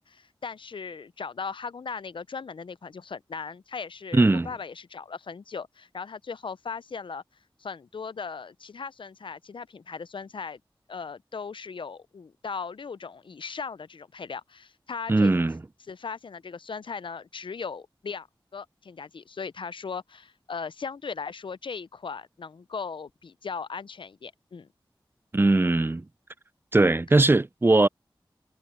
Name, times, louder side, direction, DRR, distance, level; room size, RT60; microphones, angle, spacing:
voice 1, 0.0-7.2 7.6-10.6 10.9-15.3 15.9-18.3 18.5-24.7, left 5 dB, 65° left, 0.4 m, -38 dB
voice 2, 4.1-4.5 15.1-15.6 25.3-26.0 26.7-27.9, right 2 dB, 25° right, 0.4 m, -20 dB
cardioid pair, 40°, 9 cm